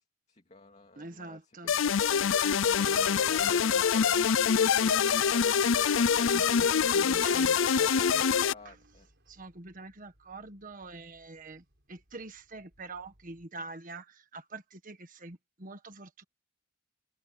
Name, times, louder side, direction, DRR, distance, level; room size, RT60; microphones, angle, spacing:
voice 1, 0.0-2.3 2.8-4.2 4.8-6.1 6.6-9.1, left 2 dB, 35° left, 2.3 m, -51 dB
voice 2, 1.0-1.7 6.3-8.2 8.6-8.8 9.3-16.2, right 3 dB, 45° right, 1.5 m, -45 dB
sound 1, 1.7-8.5, left 7 dB, 90° left, 0.6 m, -25 dB
Engine, 3.7-13.5, right 1 dB, 60° right, 7.6 m, -63 dB
head